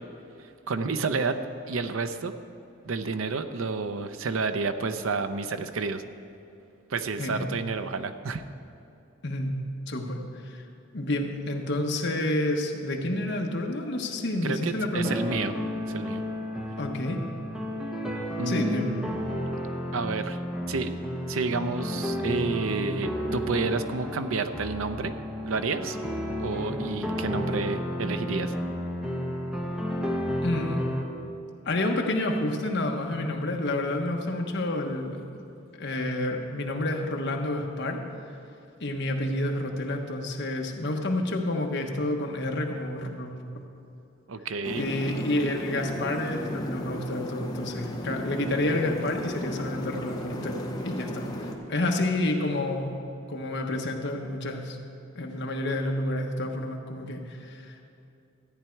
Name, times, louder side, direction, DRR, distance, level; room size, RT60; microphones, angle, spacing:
voice 1, 0.7-1.4 1.7-2.3 2.8-6.0 6.9-8.4 14.4-15.5 15.9-16.2 18.4-19.3 19.9-20.4 20.7-21.0 21.3-25.1 25.4-26.0 26.4-28.5 44.3-44.9, right 4 dB, 80° right, 10 dB, 0.6 m, -30 dB
voice 2, 9.2-9.5 9.9-10.6 10.9-15.2 16.8-17.2 18.5-18.9 30.4-30.8 31.6-35.2 35.8-38.0 38.8-43.4 44.7-53.0 53.3-54.8 55.1-57.8, left 1 dB, 55° left, 2 dB, 1.2 m, -29 dB
sound 1, 15.0-31.0, equal, 5° right, 0.9 m, -32 dB
sound 2, 44.6-51.5, equal, 20° left, 0.9 m, -35 dB
14.0 x 9.6 x 4.6 m, 2.8 s
head